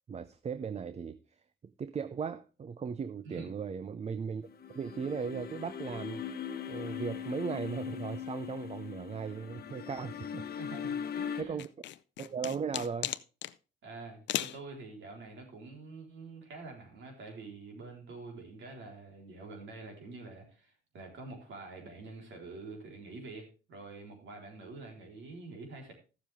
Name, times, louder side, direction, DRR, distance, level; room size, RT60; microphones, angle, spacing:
voice 1, 0.1-6.2 6.7-10.5 11.4-11.7 12.2-13.1, right 6 dB, 35° right, 0.5 m, -37 dB
sound 1, 4.4-11.4, left 8 dB, 50° left, 1.2 m, -40 dB
voice 2, 10.6-11.6 13.8-25.9, right 3 dB, 70° right, 4.0 m, -46 dB
sound 2, 11.6-13.5 14.3-14.6, left 12 dB, 65° left, 0.5 m, -36 dB
14.0 x 7.2 x 3.5 m
cardioid pair, 90°, 20 cm